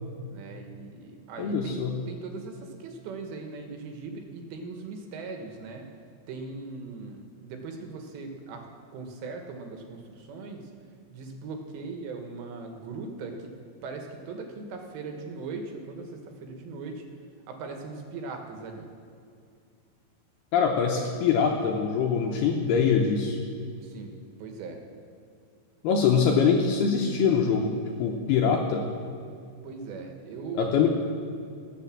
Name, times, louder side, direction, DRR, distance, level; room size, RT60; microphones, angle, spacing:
voice 1, 0.3-5.9 6.3-8.7 8.9-10.7 11.1-17.0 17.5-18.9 22.4-22.6 23.7-24.1 24.4-24.8 29.6-30.9, right 4 dB, 75° right, 4 dB, 3.1 m, -39 dB
voice 2, 1.4-1.9 20.5-23.4 25.8-28.9 30.6-30.9, left 6 dB, 75° left, 1 dB, 2.4 m, -23 dB
19.0 x 6.8 x 7.4 m, 2.4 s
omnidirectional pair, 5.5 m